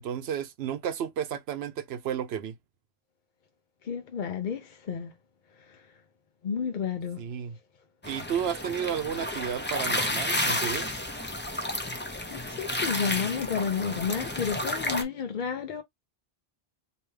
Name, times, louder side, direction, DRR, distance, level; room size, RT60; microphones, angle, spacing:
voice 1, 0.0-2.5 7.2-7.6 8.1-10.9, right 8 dB, 80° right, 0.9 m, -32 dB
voice 2, 3.8-5.1 5.7-5.8 6.4-7.2 12.3-15.8, left 7 dB, 55° left, 0.7 m, -31 dB
sound 1, 8.0-15.0, left 1 dB, 15° left, 0.5 m, -31 dB
3.3 x 2.9 x 3.2 m
omnidirectional pair, 1.0 m